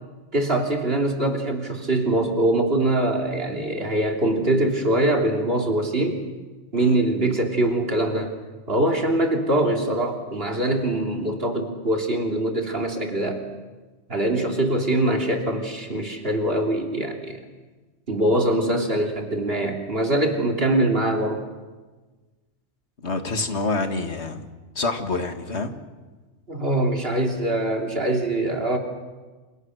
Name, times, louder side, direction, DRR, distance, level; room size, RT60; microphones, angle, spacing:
voice 1, 0.3-6.2 6.7-8.4 8.7-13.4 14.1-17.4 18.1-21.4 26.5-28.8, right 1 dB, 45° right, 2 dB, 3.3 m, -23 dB
voice 2, 23.0-24.4 24.8-25.7, left 3 dB, 55° left, 6 dB, 2.3 m, -27 dB
29.0 x 27.5 x 6.5 m, 1.3 s
omnidirectional pair, 1.3 m